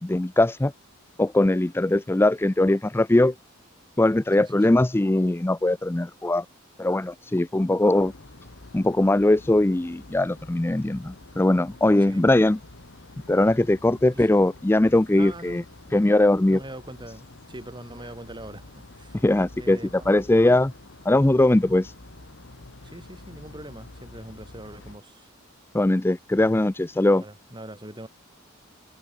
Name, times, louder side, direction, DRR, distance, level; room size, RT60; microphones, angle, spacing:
voice 1, 0.0-0.7 1.2-3.3 4.0-6.4 6.8-8.1 8.7-12.6 13.3-15.6 15.9-16.6 19.2-19.8 20.1-20.7 21.1-21.9 25.7-27.2, left 1 dB, 10° left, 0.4 m, -20 dB
voice 2, 4.4-4.8 12.1-12.3 14.1-14.5 15.1-16.1 16.5-19.2 19.6-20.1 20.4-20.7 22.8-25.3 27.2-28.1, right 1 dB, 20° right, 7.7 m, -42 dB
sound 1, 7.9-25.0, left 2 dB, 55° left, 1.4 m, -47 dB
head